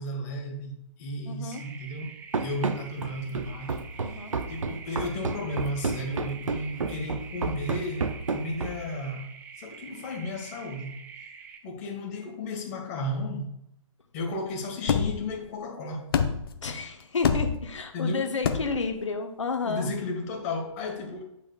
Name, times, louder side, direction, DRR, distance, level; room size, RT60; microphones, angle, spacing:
voice 1, 0.0-4.2 4.5-9.3 9.6-11.0 11.6-13.5 14.1-16.1 17.9-18.3 19.6-21.2, left 1 dB, 30° left, 1.5 m, -34 dB
voice 2, 1.3-1.6 4.0-4.4 16.6-19.9, left 4 dB, 65° left, 1.1 m, -31 dB
sound 1, 1.5-11.6, right 6 dB, 10° right, 0.5 m, -46 dB
Run, 2.3-9.0, right 4 dB, 70° right, 0.6 m, -31 dB
sound 2, 14.9-15.3 16.1-16.6 17.2-17.7 18.4-18.9, left 7 dB, 45° left, 0.6 m, -26 dB
9.1 x 6.1 x 2.4 m
figure-of-eight pair, 130°, 17 cm